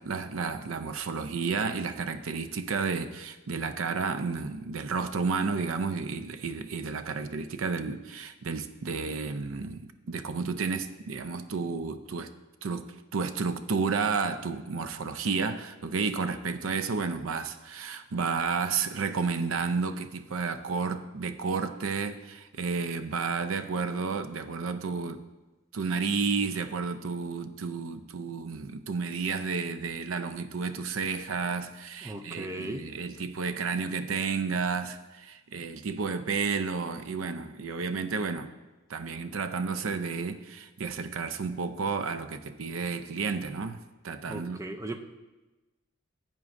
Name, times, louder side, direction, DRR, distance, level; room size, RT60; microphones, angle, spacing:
voice 1, 0.0-12.3 12.6-12.9 13.1-25.2 25.7-38.5 38.9-44.6, right 5 dB, 85° right, 0.5 m, -31 dB
voice 2, 32.0-32.9 44.2-45.0, right 2 dB, 15° right, 0.5 m, -37 dB
11.0 x 8.3 x 2.6 m
head